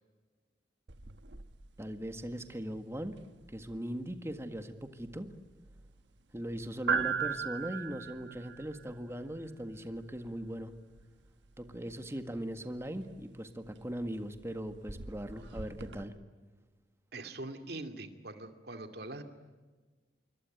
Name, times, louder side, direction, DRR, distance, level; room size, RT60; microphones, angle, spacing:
sound 1, 0.9-16.0, right 6 dB, 90° right, 1.3 m, -41 dB
voice 1, 1.8-3.2 3.5-5.4 6.3-10.7 11.6-16.1, right 1 dB, 15° right, 8 dB, 1.7 m, -39 dB
voice 2, 17.1-19.2, right 2 dB, 60° right, 6 dB, 2.4 m, -43 dB
26.5 x 23.5 x 9.3 m, 1.3 s
head